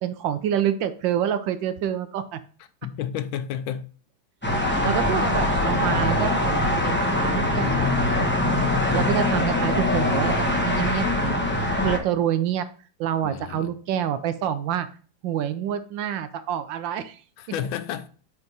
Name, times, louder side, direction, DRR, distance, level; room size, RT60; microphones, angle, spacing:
voice 1, 0.0-2.4 4.8-8.7 8.9-12.6 13.0-14.9 15.2-17.2, right 10 dB, 75° right, 1.2 m, -27 dB
voice 2, 2.8-3.9 13.2-13.7 17.4-18.1, left 9 dB, 85° left, 1.4 m, -31 dB
sound 1, 4.4-12.0, left 1 dB, 15° left, 0.4 m, -23 dB
8.1 x 3.5 x 4.0 m
omnidirectional pair, 2.2 m